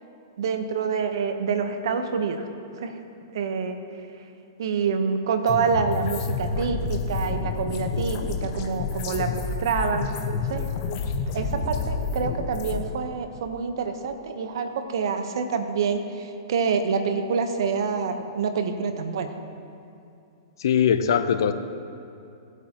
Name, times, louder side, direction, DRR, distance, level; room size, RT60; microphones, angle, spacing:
voice 1, 0.4-2.5 2.8-3.0 3.3-3.8 4.6-10.1 10.4-10.7 11.3-19.3, right 5 dB, 70° right, 7 dB, 1.0 m, -27 dB
sound 1, 5.5-12.8, left 4 dB, 45° left, 1.1 m, -29 dB
voice 2, 20.6-21.5, left 8 dB, 70° left, 10 dB, 0.6 m, -21 dB
18.0 x 8.2 x 2.9 m, 2.6 s
hypercardioid pair, 130°, 2 cm